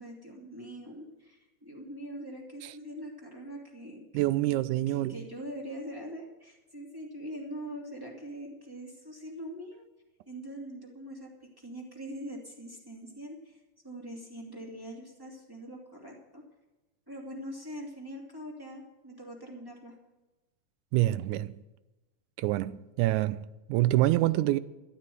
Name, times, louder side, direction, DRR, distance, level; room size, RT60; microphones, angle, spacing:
voice 1, 0.0-4.0 4.4-4.6 4.9-9.8 10.3-16.4 17.1-19.9, equal, 10° right, 2.3 m, -43 dB
voice 2, 4.1-5.2 20.9-21.6 22.4-24.6, right 16 dB, 85° right, 2.0 m, -26 dB
12.5 x 9.0 x 7.8 m
omnidirectional pair, 3.5 m